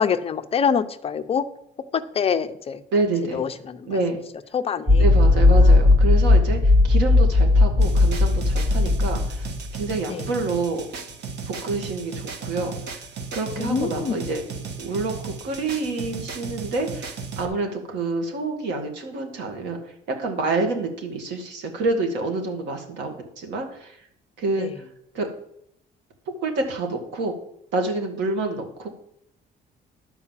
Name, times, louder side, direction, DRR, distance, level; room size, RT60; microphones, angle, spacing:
voice 1, 0.0-1.5 1.9-2.8 3.3-4.0 4.5-5.0 5.6-5.7 10.1-10.3 13.6-14.2 24.6-24.7, left 7 dB, 35° left, 10 dB, 0.5 m, -25 dB
voice 2, 2.9-3.4 3.8-4.2 5.0-10.8 11.5-13.0 13.3-14.4 14.8-19.9 20.2-24.0 24.4-24.8 25.1-25.3 26.3-27.3 27.7-28.9, right 3 dB, 90° right, 4 dB, 2.0 m, -27 dB
sound 1, 4.9-9.7, left 2 dB, 10° right, 0.7 m, -16 dB
sound 2, 7.8-17.4, right 5 dB, 75° right, 1.2 m, -35 dB
11.0 x 4.7 x 7.4 m, 0.73 s
cardioid pair, 145°, 18 cm